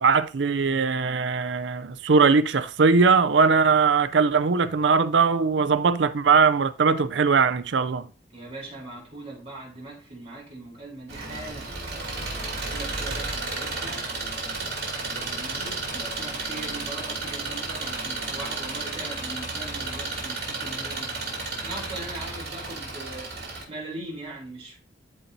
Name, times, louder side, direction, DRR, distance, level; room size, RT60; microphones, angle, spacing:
voice 1, 0.0-8.1, right 5 dB, 80° right, 0.5 m, -20 dB
voice 2, 8.3-11.7 12.4-14.1 15.0-21.2 21.6-23.3 23.7-24.8, right 2 dB, 35° right, 3.7 m, -40 dB
Engine, 11.1-23.6, right 3 dB, 60° right, 2.6 m, -32 dB
13.0 x 4.3 x 2.7 m
head